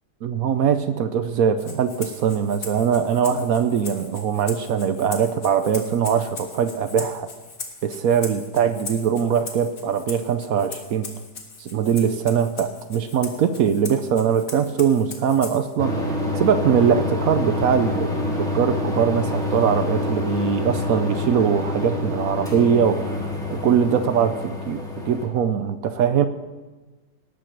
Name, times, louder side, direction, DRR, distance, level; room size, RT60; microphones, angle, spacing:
voice 1, 0.2-7.3 7.8-11.1 11.6-23.2 23.5-26.3, right 7 dB, 65° right, 10 dB, 0.9 m, -22 dB
Rattle (instrument), 1.6-15.8, left 4 dB, 50° left, 1.9 m, -39 dB
sound 1, 15.8-25.3, left 2 dB, ahead, 2.0 m, -27 dB
18.5 x 6.2 x 6.7 m, 1.2 s
omnidirectional pair, 1.9 m